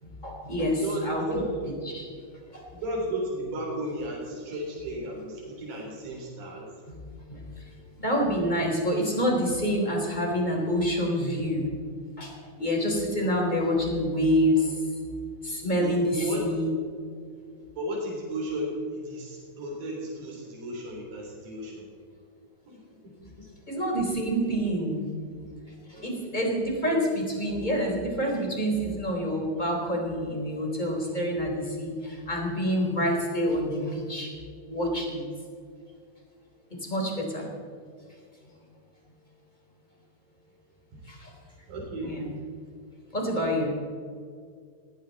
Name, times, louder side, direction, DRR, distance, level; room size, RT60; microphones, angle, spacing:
voice 1, 0.0-1.2 1.9-2.1 2.5-2.6 6.9-7.0 7.3-7.7 8.0-11.7 12.2-14.8 15.4-16.7 23.7-25.2 25.9-34.3 34.7-35.2 36.7-37.5 41.1-41.3 42.0-42.3 43.1-43.7, equal, 10° left, 0 dB, 3.6 m, -27 dB
voice 2, 0.7-1.7 2.7-6.7 15.8-16.5 17.8-21.9 22.7-23.5 25.9-26.4 40.9-41.0 41.7-42.2, right 1 dB, 75° right, -3 dB, 5.5 m, -34 dB
19.5 x 16.5 x 4.2 m, 2.2 s
omnidirectional pair, 4.0 m